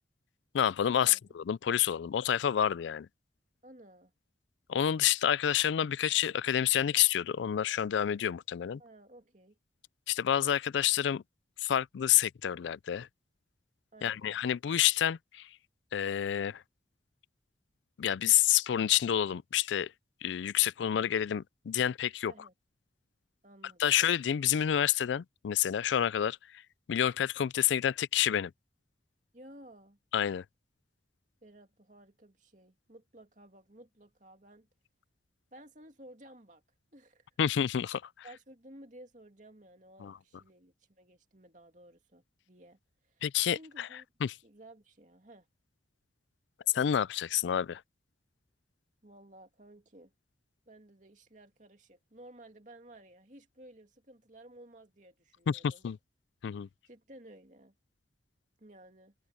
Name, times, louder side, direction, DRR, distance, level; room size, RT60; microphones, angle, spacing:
voice 1, 0.5-3.1 4.7-8.8 10.1-11.2 11.6-13.1 14.0-15.5 15.9-16.6 18.0-19.9 20.2-22.3 23.8-26.6 26.9-28.5 30.1-30.4 37.4-38.0 40.0-40.1 43.2-43.9 44.2-44.3 46.7-47.8 55.5-56.0 56.4-56.7, left 10 dB, 85° left, 0.4 m, -28 dB
voice 2, 3.6-4.1 8.8-9.6 13.9-14.4 22.3-22.5 23.4-24.0 29.3-30.0 31.4-34.7 35.5-36.6 36.9-37.3 38.2-43.2 43.5-44.1 44.4-45.5 49.0-50.1 50.7-55.9 56.9-57.7 58.6-59.1, right 1 dB, 45° right, 2.6 m, -55 dB
head